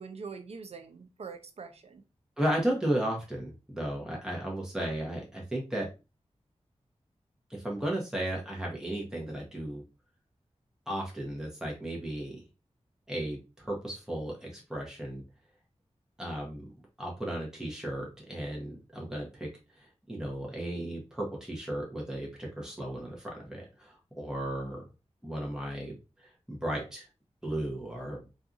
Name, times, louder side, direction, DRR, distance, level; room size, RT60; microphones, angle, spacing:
voice 1, 0.0-2.0, right 5 dB, 60° right, 6 dB, 0.5 m, -43 dB
voice 2, 2.4-5.9 7.5-9.8 10.9-12.4 13.1-15.2 16.2-16.6 17.0-19.5 19.7-24.9 25.2-27.1 27.4-28.2, right 1 dB, 5° right, -2 dB, 0.9 m, -35 dB
2.6 x 2.4 x 2.5 m, 0.28 s
cardioid pair, 50°, 12 cm